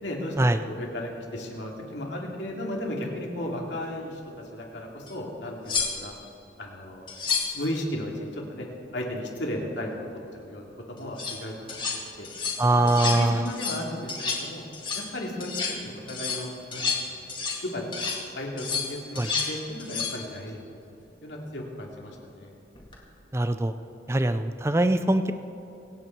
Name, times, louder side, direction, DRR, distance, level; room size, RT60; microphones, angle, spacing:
voice 1, 0.0-4.2 4.5-6.1 6.6-7.1 7.5-8.7 8.9-10.0 10.3-11.7 12.2-12.3 12.7-14.6 14.9-17.2 17.6-17.9 18.3-20.7 21.2-22.5, left 1 dB, 85° left, -1 dB, 2.6 m, -35 dB
sound 1, 5.1-5.2 5.7-6.2 7.1-7.6 11.0-11.4 11.7-12.0 12.2-12.6 12.9-13.2 13.5-13.8 14.1-14.5 14.7-15.1 15.4-15.8 16.1-17.7 17.9-18.2 18.6-19.5 19.8-20.2 22.8-22.9, left 5 dB, 30° left, 2.3 m, -30 dB
voice 2, 12.6-13.5 19.2-19.3 23.3-23.7 24.1-25.3, right 1 dB, 15° right, 10 dB, 0.4 m, -22 dB
24.5 x 9.0 x 4.6 m, 2.9 s
head